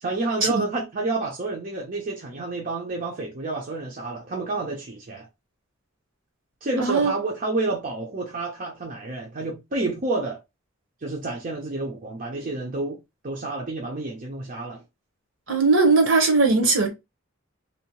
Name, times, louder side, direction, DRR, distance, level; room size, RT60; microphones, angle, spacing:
voice 1, 0.0-5.3 6.6-10.4 11.0-13.0 13.2-14.8, right 2 dB, 45° right, 0.6 m, -29 dB
voice 2, 6.8-7.1 15.5-16.9, right 3 dB, 70° right, 0.9 m, -19 dB
2.7 x 2.0 x 2.9 m
head